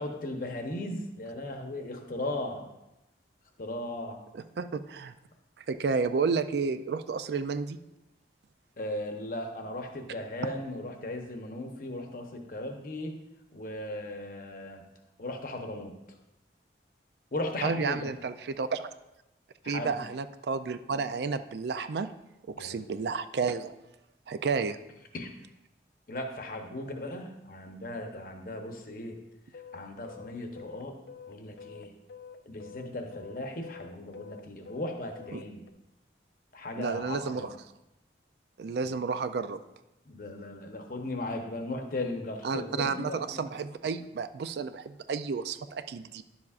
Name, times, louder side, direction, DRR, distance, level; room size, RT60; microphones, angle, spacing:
voice 1, 0.0-2.6 3.6-4.2 8.8-13.2 13.5-14.8 15.2-15.9 17.3-18.1 19.6-20.0 22.5-23.0 25.1-25.3 26.1-29.2 29.7-31.0 31.3-31.9 32.5-35.6 36.5-37.5 40.1-43.4, left 1 dB, 50° left, 4 dB, 0.9 m, -37 dB
voice 2, 4.3-5.1 5.7-7.8 17.6-18.9 19.7-22.1 22.5-23.8 24.3-24.8 35.3-35.4 36.8-37.5 38.6-39.6 42.4-46.2, right 5 dB, 65° right, 11 dB, 0.4 m, -31 dB
sound 1, 29.5-35.7, left 6 dB, 70° left, 0.5 m, -47 dB
10.5 x 7.1 x 2.4 m, 0.94 s
head